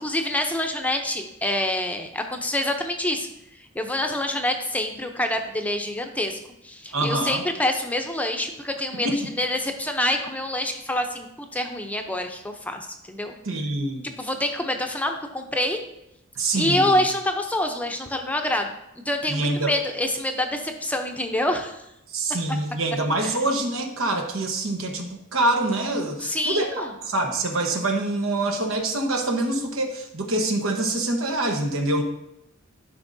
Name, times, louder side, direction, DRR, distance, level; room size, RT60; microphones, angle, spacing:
voice 1, 0.0-3.3 3.7-6.4 6.6-13.4 14.0-15.8 16.5-18.7 19.1-21.8 23.2-23.3 26.2-26.9, left 1 dB, 5° left, 4 dB, 0.6 m, -26 dB
voice 2, 6.9-7.4 9.0-9.2 13.4-14.0 16.4-17.0 19.3-19.7 22.1-32.0, right 2 dB, 85° right, 3 dB, 1.1 m, -25 dB
11.5 x 5.2 x 2.7 m, 0.84 s
head